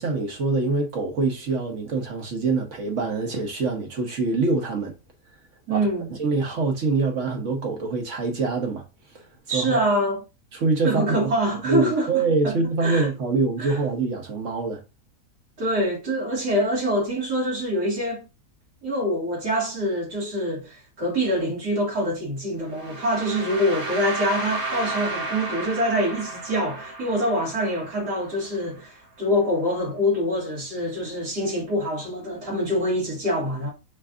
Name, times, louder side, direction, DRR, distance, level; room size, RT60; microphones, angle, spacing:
voice 1, 0.0-4.9 5.7-8.8 9.1-9.2 9.5-9.8 10.5-11.3 11.6-14.8, right 3 dB, 55° right, 1.3 m, -25 dB
voice 2, 5.7-6.1 9.5-10.2 10.8-12.5 12.8-13.1 13.6-13.8 15.6-18.3 18.8-33.7, equal, 85° right, 2.8 m, -25 dB
sound 1, 22.7-28.7, right 2 dB, 25° right, 1.1 m, -33 dB
5.0 x 3.9 x 2.5 m
omnidirectional pair, 1.7 m